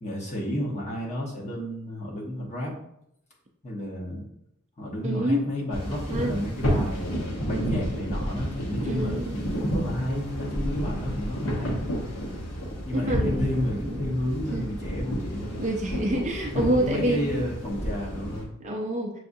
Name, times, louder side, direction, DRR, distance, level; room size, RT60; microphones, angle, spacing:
voice 1, 0.0-2.7 3.6-4.2 4.8-9.2 9.6-11.8 12.8-15.6 16.5-18.6, left 1 dB, 30° left, -4 dB, 1.0 m, -31 dB
voice 2, 5.0-5.5 6.1-6.4 8.8-9.4 12.9-13.5 13.8-14.2 14.5-14.6 15.6-17.5 18.6-19.2, right 1 dB, 30° right, 1 dB, 0.5 m, -27 dB
sound 1, 5.7-18.4, equal, 75° left, 0.9 m, -31 dB
6.5 x 2.4 x 2.6 m, 0.77 s
head